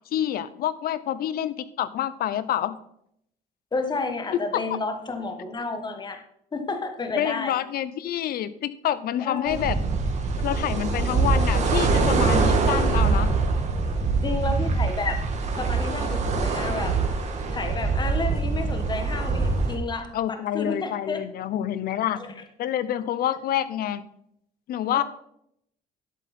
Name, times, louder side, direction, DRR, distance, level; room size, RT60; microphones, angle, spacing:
voice 1, 0.1-2.8 4.5-4.8 7.2-9.8 10.4-13.3 20.1-22.2 22.6-24.0 24.7-25.0, left 11 dB, 65° left, 16 dB, 0.7 m, -27 dB
voice 2, 3.7-6.2 6.5-7.6 9.2-9.6 14.2-15.2 15.6-17.0 17.5-21.2 22.1-22.4 24.9-25.0, left 3 dB, 25° left, 7 dB, 1.4 m, -31 dB
sound 1, 9.5-19.8, right 4 dB, 45° right, 2.2 m, -24 dB
11.5 x 8.3 x 4.3 m, 0.73 s
cardioid pair, 110°, 17 cm